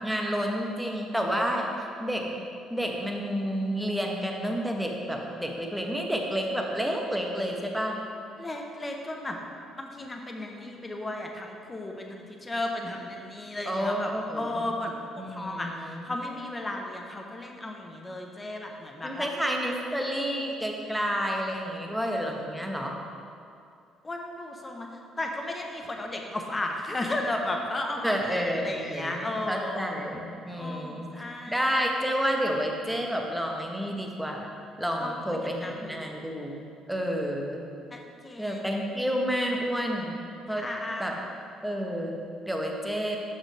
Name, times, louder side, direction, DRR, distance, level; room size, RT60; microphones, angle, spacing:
voice 1, 0.0-2.4 2.7-8.0 13.7-14.5 15.2-16.1 19.0-23.0 28.0-31.1 31.5-34.5 34.8-37.6 38.4-40.2 40.5-40.7 41.0-41.2 41.6-43.2, equal, 5° right, 1 dB, 0.9 m, -30 dB
voice 2, 8.4-9.4 9.8-19.3 24.0-29.8 30.6-31.7 35.0-36.3 37.9-38.7 40.5-41.2, left 1 dB, 25° left, 2 dB, 0.7 m, -35 dB
6.6 x 6.0 x 3.3 m, 2.5 s
supercardioid pair, 75°, 0 cm